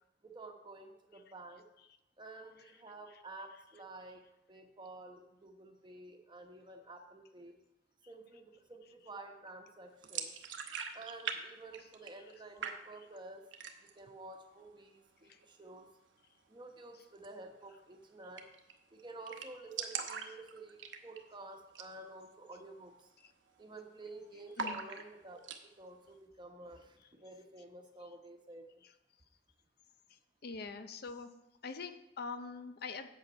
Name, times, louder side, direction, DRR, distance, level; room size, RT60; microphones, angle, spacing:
voice 1, 0.2-1.6 2.2-7.6 8.1-10.3 10.9-13.4 13.8-15.9 16.5-18.5 18.9-23.1 23.6-28.8, right 2 dB, 25° right, 3 dB, 1.0 m, -51 dB
sound 1, 10.0-11.4 11.6-12.3 12.6-13.2 13.5-14.0 14.4-14.5 14.8-15.4 17.1-17.3 17.6-17.7 17.9-18.0 18.4-18.7 19.0-19.1 19.3-21.3 21.7-21.9 22.3-22.4 22.9-23.2 23.5-24.1 24.5-25.6, right 6 dB, 90° right, 0.9 m, -41 dB
voice 2, 30.1-31.3 31.6-33.1, left 4 dB, 55° left, 10 dB, 0.6 m, -44 dB
8.2 x 7.3 x 5.3 m, 0.88 s
head